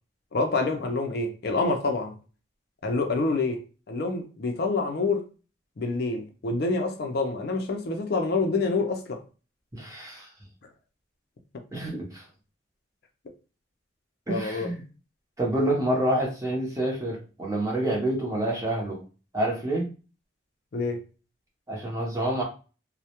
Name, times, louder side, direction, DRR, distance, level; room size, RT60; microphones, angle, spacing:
voice 1, 0.3-2.1 2.8-3.6 3.9-5.2 5.8-9.2 14.3-14.7 20.7-21.0, left 3 dB, 50° left, 0.4 m, -27 dB
voice 2, 9.7-10.3 11.7-12.2 14.3-14.8 15.4-19.0 19.3-19.9 21.7-22.4, right 1 dB, 15° right, 0.6 m, -27 dB
2.2 x 2.0 x 2.8 m
head